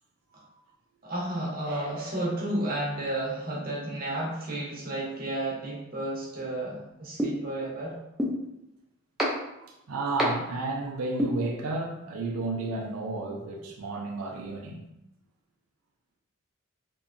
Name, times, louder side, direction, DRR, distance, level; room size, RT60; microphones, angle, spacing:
voice 1, 1.0-8.0, right 1 dB, 40° right, -4 dB, 0.7 m, -32 dB
sound 1, 7.2-7.3 8.2-8.3 9.2-9.3 10.2-10.3 11.2-11.3, equal, ahead, 0.4 m, -24 dB
voice 2, 9.6-14.8, right 3 dB, 70° right, 0 dB, 0.4 m, -32 dB
2.7 x 2.2 x 2.5 m, 0.87 s
head